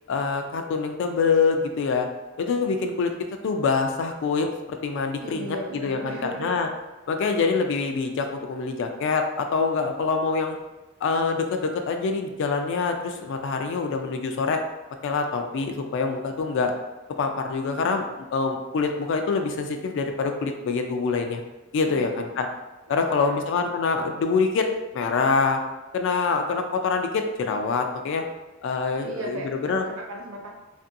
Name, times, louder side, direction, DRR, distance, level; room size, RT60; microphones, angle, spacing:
voice 1, 0.1-2.1 2.4-3.1 3.4-6.7 7.1-10.6 11.0-14.6 15.0-16.7 17.2-21.4 21.7-22.5 22.9-24.7 24.9-25.6 25.9-28.2 28.6-29.4 29.7-29.9, left 4 dB, 60° left, 5 dB, 0.3 m, -25 dB
voice 2, 5.2-6.6 21.8-22.3 22.9-23.4 29.0-30.5, right 2 dB, 90° right, 0 dB, 0.5 m, -36 dB
2.6 x 2.6 x 2.5 m, 1.1 s
head